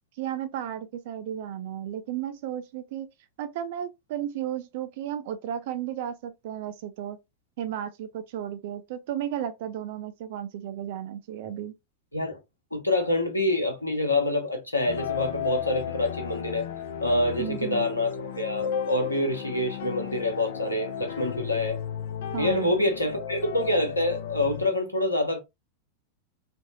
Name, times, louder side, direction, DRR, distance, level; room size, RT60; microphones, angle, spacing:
voice 1, 0.2-3.1 3.4-7.2 7.6-11.7 17.4-17.9 22.3-22.7, right 10 dB, 50° right, 0.4 m, -34 dB
voice 2, 12.7-16.6 17.0-21.8 22.4-25.4, left 1 dB, 85° left, 0.8 m, -26 dB
sound 1, 14.9-24.7, left 8 dB, 55° left, 0.4 m, -34 dB
3.3 x 2.0 x 2.6 m
figure-of-eight pair, 90°, 0 cm